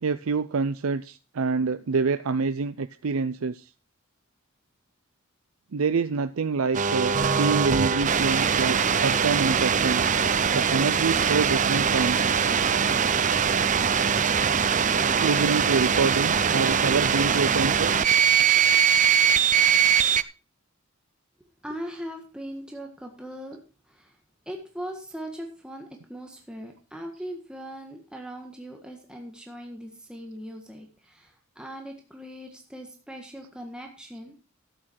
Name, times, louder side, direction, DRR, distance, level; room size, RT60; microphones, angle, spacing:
voice 1, 0.0-3.7 5.7-10.1 10.5-12.2 15.2-17.9, right 4 dB, 80° right, 12 dB, 0.5 m, -26 dB
sound 1, 6.7-20.2, right 7 dB, 35° right, 0.6 m, -22 dB
voice 2, 21.6-24.2 24.4-34.4, equal, 5° right, 1 dB, 1.6 m, -40 dB
12.5 x 8.8 x 4.6 m, 0.35 s
head